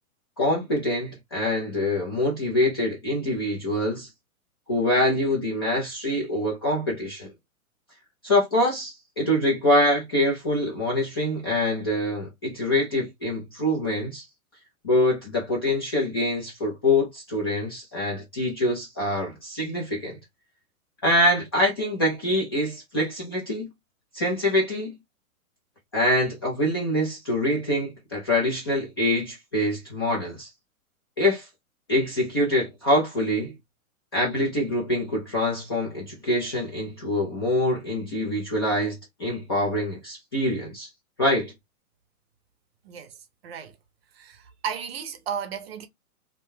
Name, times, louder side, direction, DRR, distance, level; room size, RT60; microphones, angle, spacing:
voice 1, 0.4-4.1 4.7-7.3 8.2-14.2 14.8-20.2 21.0-23.7 24.1-24.9 25.9-30.5 31.2-31.5 31.9-33.5 34.1-40.9 41.2-41.5, left 1 dB, 20° left, 0.4 m, -25 dB
voice 2, 43.4-43.8 44.1-45.9, right 8 dB, 45° right, 0.6 m, -34 dB
2.7 x 2.2 x 3.0 m
hypercardioid pair, 155°, 43 cm